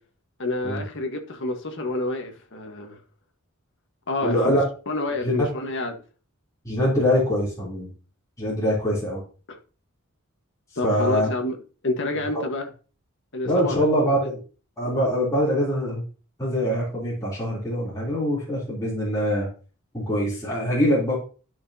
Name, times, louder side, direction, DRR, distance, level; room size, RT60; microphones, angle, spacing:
voice 1, 0.4-3.0 4.1-4.5 4.9-6.0 9.5-9.6 10.8-11.6 11.8-12.7 13.3-13.8, left 2 dB, 55° left, 1.5 m, -28 dB
voice 2, 4.2-4.6 5.2-5.5 6.6-7.9 8.4-9.2 10.8-11.3 12.3-12.4 13.4-14.4 14.8-16.0 16.4-19.5 19.9-21.2, equal, 15° left, 3.4 m, -23 dB
12.0 x 6.1 x 2.8 m
head